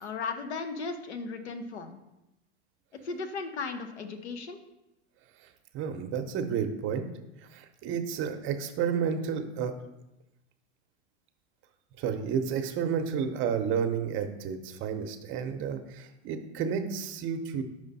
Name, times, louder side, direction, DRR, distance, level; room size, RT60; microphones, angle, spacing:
voice 1, 0.0-2.0 3.0-4.6, left 4 dB, 85° left, 6 dB, 0.8 m, -36 dB
voice 2, 5.7-7.1 7.5-9.7 12.0-17.6, right 7 dB, 40° right, 7 dB, 0.7 m, -31 dB
5.0 x 4.9 x 4.1 m, 0.92 s
hypercardioid pair, 105°, 33 cm